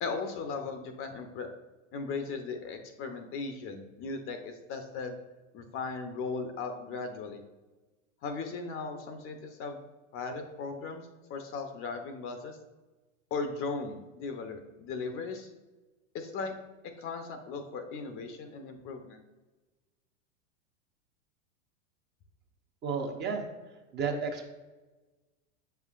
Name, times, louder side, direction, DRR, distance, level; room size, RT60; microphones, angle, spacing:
voice 1, 0.0-1.5 1.9-5.2 5.5-7.4 8.2-9.8 10.1-11.0 11.3-12.6 13.3-15.5 16.1-16.6 16.8-19.2, left 4 dB, 35° left, 6 dB, 0.7 m, -37 dB
voice 2, 22.8-23.5 23.9-24.5, right 5 dB, 25° right, 3 dB, 0.7 m, -32 dB
7.5 x 5.7 x 2.4 m, 1.2 s
hypercardioid pair, 115°, 40 cm